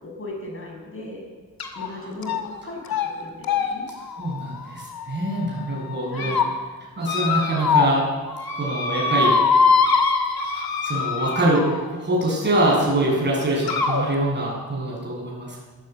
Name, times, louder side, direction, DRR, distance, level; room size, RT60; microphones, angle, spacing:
voice 1, 0.0-1.3 1.8-3.9 6.1-6.5, left 2 dB, 35° left, 0 dB, 6.9 m, -37 dB
sound 1, 1.6-1.9 2.2-2.6 2.9-3.1 3.4-5.4 5.9-6.5 7.0-8.0 8.3-11.9 12.9-13.0 13.7-14.0, left 5 dB, 75° left, 2.6 m, -23 dB
voice 2, 4.2-6.3 7.0-8.0 8.6-10.0 10.8-15.6, right 1 dB, 30° right, -4 dB, 7.5 m, -24 dB
22.0 x 14.5 x 8.3 m, 1.4 s
wide cardioid pair, 155°, 36 cm